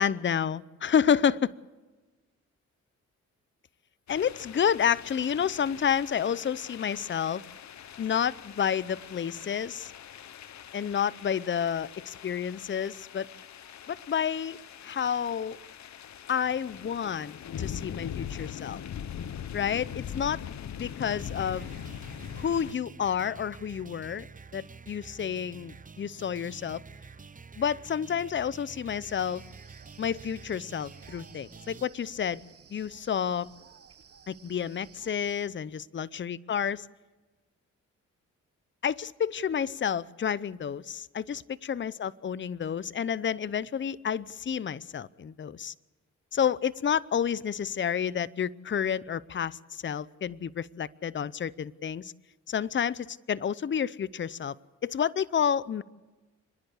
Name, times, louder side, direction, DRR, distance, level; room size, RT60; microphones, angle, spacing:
voice 1, 0.0-1.5 4.1-7.4 8.0-9.9 10.7-13.3 13.9-15.6 16.3-17.3 17.6-18.8 19.5-20.4 20.7-21.7 22.4-24.3 24.5-26.8 27.6-29.4 30.0-32.4 32.7-33.5 34.3-36.9 38.8-45.7 46.3-52.1 52.5-54.6 54.8-55.8, left 8 dB, 40° left, 18 dB, 0.7 m, -30 dB
sound 1, 4.1-22.7, left 9 dB, 65° left, 0.9 m, -42 dB
sound 2, 21.2-31.8, right 5 dB, 25° right, 0.8 m, -48 dB
sound 3, 29.0-35.4, right 7 dB, 50° right, 1.4 m, -55 dB
30.0 x 10.5 x 8.4 m, 1.2 s
cardioid pair, 70°, 30 cm